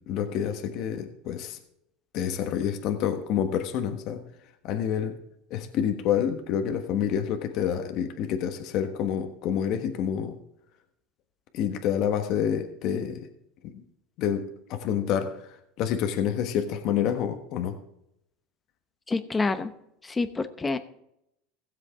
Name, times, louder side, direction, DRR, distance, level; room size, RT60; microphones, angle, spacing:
voice 1, 0.0-1.6 2.1-4.2 4.6-5.2 5.5-10.4 11.5-13.3 13.7-13.8 14.2-15.3 15.8-17.8, left 9 dB, 55° left, 6 dB, 1.4 m, -28 dB
voice 2, 19.1-19.7 20.0-20.8, left 3 dB, 15° left, 10 dB, 0.9 m, -27 dB
16.5 x 7.6 x 3.6 m, 0.78 s
supercardioid pair, 125°, 0 cm